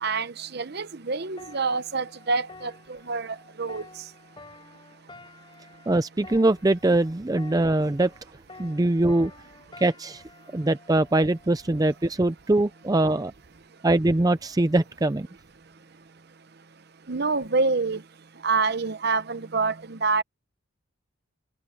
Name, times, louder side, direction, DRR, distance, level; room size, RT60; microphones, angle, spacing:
voice 1, 0.0-2.7 3.1-3.3 3.6-3.8 17.1-18.0 18.4-20.2, right 4 dB, 50° right, 0.8 m, -26 dB
sound 1, 1.4-8.2 8.5-12.1 12.7-12.9, left 3 dB, 25° left, 5.5 m, -50 dB
voice 2, 5.9-8.1 8.6-9.3 9.8-10.2 10.5-13.3 13.8-15.3, right 2 dB, 15° right, 0.4 m, -22 dB
head